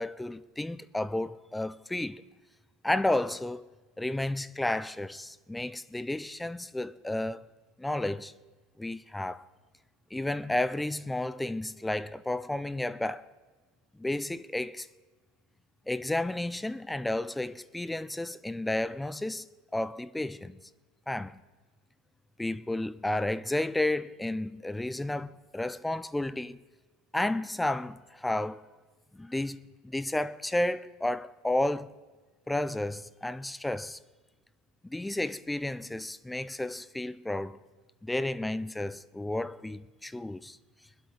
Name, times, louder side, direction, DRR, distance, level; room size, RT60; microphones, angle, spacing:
voice 1, 0.0-2.3 2.8-3.6 4.0-7.4 7.8-8.3 8.8-9.4 10.1-13.3 14.0-14.9 15.9-19.5 19.7-20.6 21.1-21.4 22.4-26.6 27.1-28.6 29.1-29.6 29.8-31.9 32.5-34.0 34.8-37.6 38.0-40.6, left 1 dB, 5° left, 0.4 m, -32 dB
21.5 x 8.2 x 4.7 m
supercardioid pair, 155°, 0 cm